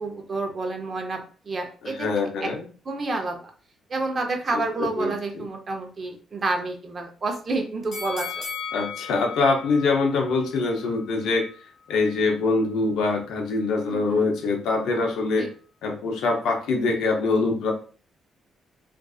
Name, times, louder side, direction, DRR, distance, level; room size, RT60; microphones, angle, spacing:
voice 1, 0.0-2.0 2.4-2.5 2.9-3.5 3.9-8.4 13.9-14.3 15.4-15.5, right 3 dB, 40° right, 3 dB, 0.6 m, -29 dB
voice 2, 1.8-2.6 5.0-5.5 8.7-11.4 11.9-15.5 15.8-17.7, left 3 dB, 80° left, 1 dB, 0.7 m, -24 dB
sound 1, 7.9-11.0 11.4-11.5, left 6 dB, 65° left, 1.0 m, -36 dB
2.5 x 2.4 x 2.3 m, 0.40 s
cardioid pair, 90°, 0 cm